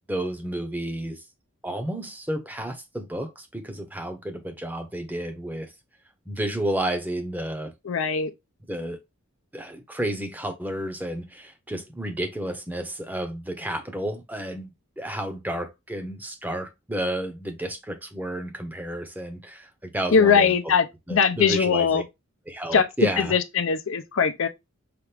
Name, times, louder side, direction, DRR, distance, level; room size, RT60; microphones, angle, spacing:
voice 1, 0.1-1.2 1.6-5.7 6.3-7.7 8.7-9.0 9.5-20.5 21.1-22.0 22.5-23.3, right 1 dB, 10° right, 0.7 m, -31 dB
voice 2, 7.9-8.3 20.1-22.0 22.7-22.9 23.2-24.5, left 6 dB, 65° left, 0.5 m, -21 dB
5.7 x 2.5 x 3.3 m
head